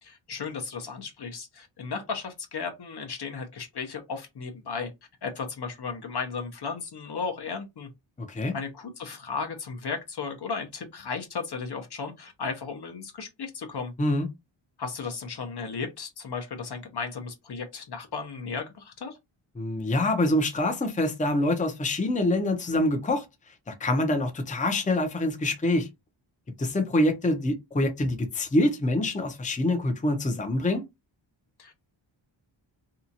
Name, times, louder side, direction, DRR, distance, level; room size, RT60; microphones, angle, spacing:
voice 1, 0.0-4.9 5.2-7.9 8.5-13.9 14.8-19.2 31.6-31.7, left 5 dB, 55° left, 0.8 m, -35 dB
voice 2, 19.6-23.2 23.7-25.9 26.6-30.8, left 1 dB, 15° left, 0.6 m, -25 dB
2.8 x 2.3 x 2.7 m
wide cardioid pair, 95°, 48 cm